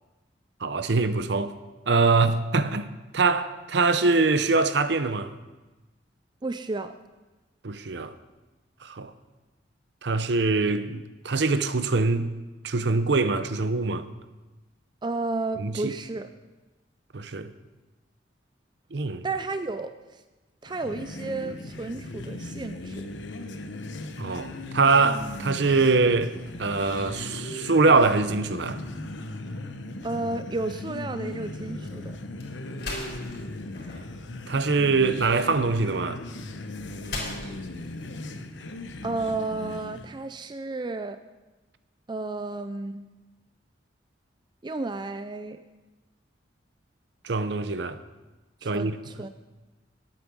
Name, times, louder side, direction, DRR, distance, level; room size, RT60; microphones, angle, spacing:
voice 1, 0.6-1.5 1.9-5.3 7.6-8.1 8.8-9.1 10.0-12.3 12.6-14.0 15.6-15.9 17.1-17.5 18.9-19.2 24.2-26.3 26.6-28.8 34.5-36.2 47.2-48.0 48.6-49.0, right 3 dB, 65° right, 0.7 m, -23 dB
voice 2, 6.4-6.9 15.0-16.3 19.2-19.9 20.6-23.1 30.0-32.2 39.0-41.2 42.1-43.0 44.6-45.6 48.6-49.3, right 3 dB, 25° right, 0.4 m, -32 dB
sound 1, 20.6-40.1, left 2 dB, 80° left, 0.9 m, -38 dB
sound 2, 31.8-39.2, left 2 dB, 60° left, 3.7 m, -42 dB
11.5 x 8.9 x 6.2 m
head